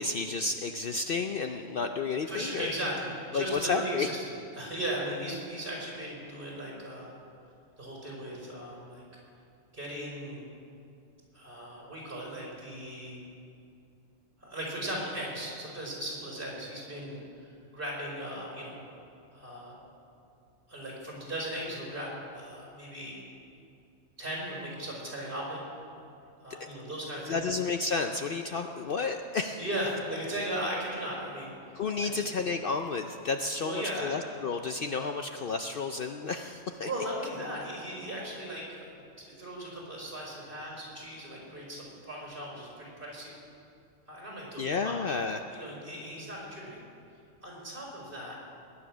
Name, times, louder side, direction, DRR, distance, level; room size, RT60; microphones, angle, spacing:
voice 1, 0.0-2.7 3.3-4.1 27.3-29.6 31.7-36.9 44.6-45.4, left 4 dB, 55° left, 6 dB, 0.7 m, -31 dB
voice 2, 2.2-7.1 7.8-9.0 9.7-10.4 11.3-13.2 14.4-18.8 19.3-19.8 20.7-23.2 24.2-25.6 26.4-27.4 29.6-31.6 32.1-32.2 33.5-34.1 36.8-38.9 39.2-43.3 44.1-45.0 45.5-46.8 47.4-48.4, right 1 dB, 45° right, -4 dB, 4.9 m, -37 dB
21.0 x 10.0 x 6.2 m, 2.5 s
omnidirectional pair, 1.3 m